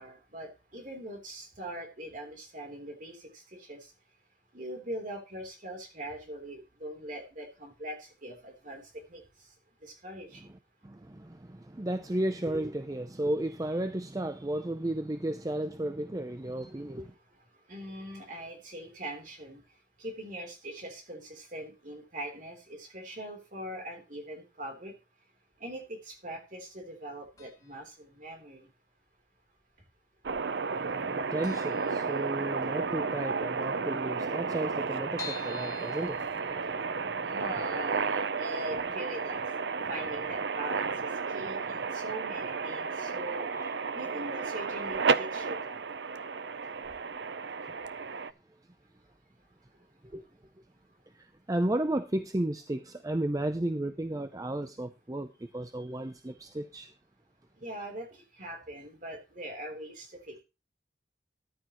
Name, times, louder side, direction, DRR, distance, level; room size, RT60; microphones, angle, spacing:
voice 1, 0.0-3.9 4.5-8.8 9.1-9.2 9.8-10.5 17.7-19.6 20.0-24.9 25.6-28.7 37.3-39.4 39.9-43.5 43.9-45.8 57.6-60.4, right 1 dB, 45° right, 3.5 m, -42 dB
voice 2, 10.8-17.1 30.7-37.4 50.1-50.2 51.1-56.9, right 1 dB, 20° right, 0.5 m, -34 dB
sound 1, 27.4-27.9 28.2-28.3 29.2-29.9 30.2-30.3 30.6-30.7 31.1-31.2 31.4-32.7 33.1-33.2 33.5-33.6 33.8-33.9 34.4-37.0 37.5-37.6 37.9-38.0, left 7 dB, 20° left, 1.8 m, -47 dB
sound 2, 30.2-48.3, right 5 dB, 65° right, 0.6 m, -32 dB
14.0 x 10.5 x 3.0 m
head